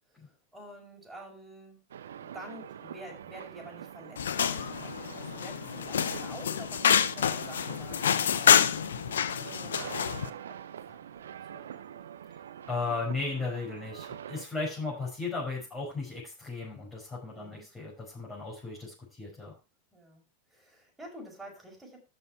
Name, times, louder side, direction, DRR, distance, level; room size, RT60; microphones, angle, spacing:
voice 1, 0.1-1.8 2.2-8.6 9.5-10.6 10.9-12.0 14.8-15.0 17.3-17.7 19.9-20.2 20.5-22.0, equal, 5° right, -1 dB, 6.0 m, -49 dB
sound 1, 1.9-14.5, right 9 dB, 65° right, 0.8 m, -45 dB
perciana fuerte, 4.2-10.3, left 8 dB, 65° left, 0.7 m, -27 dB
voice 2, 12.7-19.5, left 3 dB, 10° left, -6 dB, 6.0 m, -35 dB
13.5 x 6.3 x 4.7 m, 0.30 s
figure-of-eight pair, 90°, 0 cm